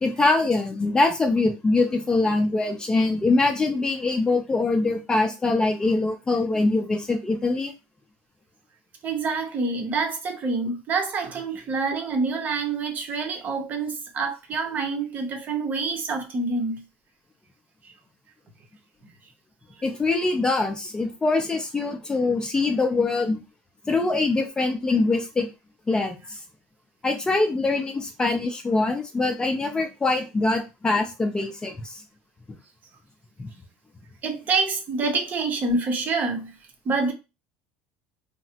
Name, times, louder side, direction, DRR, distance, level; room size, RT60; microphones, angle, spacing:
voice 1, 0.0-7.7 19.8-23.4 23.9-25.5 25.9-26.4 27.0-32.0 33.4-33.5, left 3 dB, 15° left, 0.5 m, -23 dB
voice 2, 9.0-16.8 34.2-36.5 36.8-37.1, right 4 dB, 40° right, 0.7 m, -27 dB
3.2 x 2.0 x 2.8 m
supercardioid pair, 110°, 5 cm